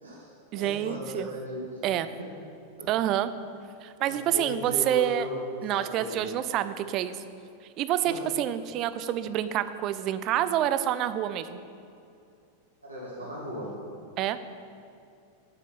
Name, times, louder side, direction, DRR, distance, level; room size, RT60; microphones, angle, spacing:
voice 1, 0.0-1.8 2.2-2.3 2.8-2.9 4.1-6.3 8.0-8.2 12.8-13.7, left 1 dB, 80° right, -6 dB, 1.7 m, -37 dB
voice 2, 0.5-1.3 1.8-2.1 2.9-3.3 3.8-5.3 5.6-7.2 7.8-11.6 14.2-14.4, right 11 dB, 35° right, 12 dB, 0.4 m, -27 dB
7.3 x 6.8 x 6.1 m, 2.5 s
figure-of-eight pair, 90°, 0 cm